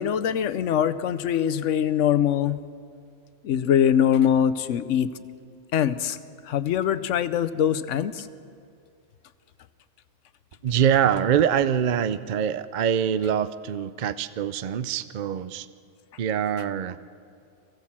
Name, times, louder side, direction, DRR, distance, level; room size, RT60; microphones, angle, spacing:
voice 1, 0.0-2.6 3.4-5.1 5.7-6.2 6.4-8.3, left 9 dB, 75° left, 13 dB, 1.1 m, -23 dB
voice 2, 10.6-15.7 16.2-17.0, right 9 dB, 50° right, 14 dB, 0.6 m, -24 dB
23.0 x 16.0 x 7.3 m, 2.4 s
omnidirectional pair, 1.3 m